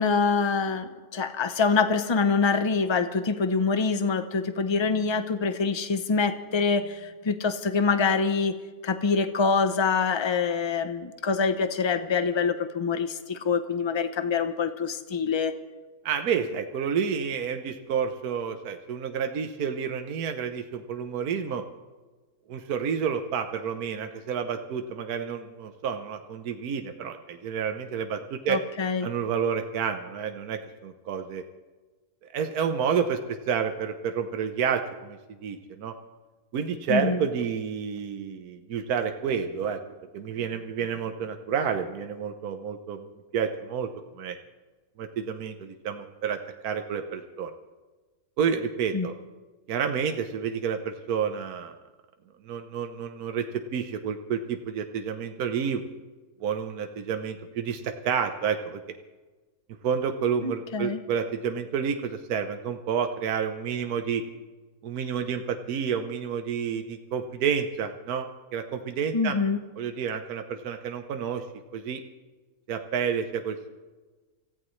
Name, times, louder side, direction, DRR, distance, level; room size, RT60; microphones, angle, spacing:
voice 1, 0.0-8.5 8.8-15.5 28.5-29.1 36.9-37.2 48.9-49.1 60.4-61.0 69.1-69.6, left 5 dB, 30° left, 10 dB, 0.5 m, -25 dB
voice 2, 16.0-21.6 22.5-28.6 29.0-31.4 32.3-35.9 36.5-39.8 40.1-43.9 44.1-44.4 45.0-47.5 48.4-49.1 49.7-51.7 52.4-53.4 53.7-55.8 56.4-58.8 59.8-64.2 64.8-68.3 68.5-69.4 69.8-71.4 71.7-72.0 72.7-73.6, right 7 dB, 75° right, 6 dB, 1.4 m, -29 dB
26.5 x 15.0 x 3.2 m, 1.3 s
omnidirectional pair, 1.6 m